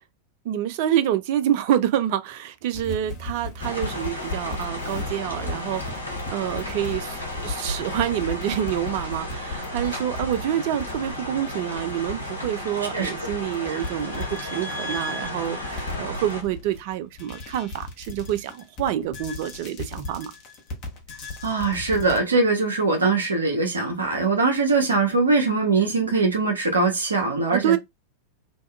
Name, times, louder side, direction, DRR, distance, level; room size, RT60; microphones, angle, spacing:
voice 1, 0.4-5.8 6.3-7.2 7.4-20.3 27.5-27.8, right 11 dB, 50° right, 0.4 m, -27 dB
sound 1, 2.7-22.2, left 2 dB, 40° left, 0.8 m, -36 dB
sound 2, 3.6-16.4, left 1 dB, 80° left, 0.7 m, -34 dB
voice 2, 21.4-27.8, right 3 dB, 75° right, 0.7 m, -22 dB
2.7 x 2.2 x 2.2 m
figure-of-eight pair, 90°, 0 cm